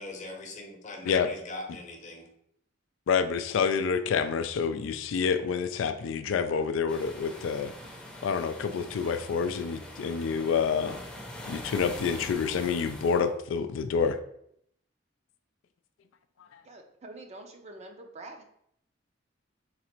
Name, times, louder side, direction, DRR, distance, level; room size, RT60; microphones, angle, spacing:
voice 1, 0.0-2.3, left 2 dB, 40° left, 2 dB, 0.8 m, -41 dB
voice 2, 3.1-7.7 8.2-11.0 11.5-14.2 16.5-16.6, left 6 dB, 80° left, 9 dB, 0.3 m, -28 dB
sound 1, 6.9-13.3, left 1 dB, 5° left, 0.7 m, -43 dB
voice 3, 16.6-18.4, right 2 dB, 35° right, 4 dB, 0.6 m, -46 dB
4.0 x 2.5 x 4.3 m, 0.72 s
head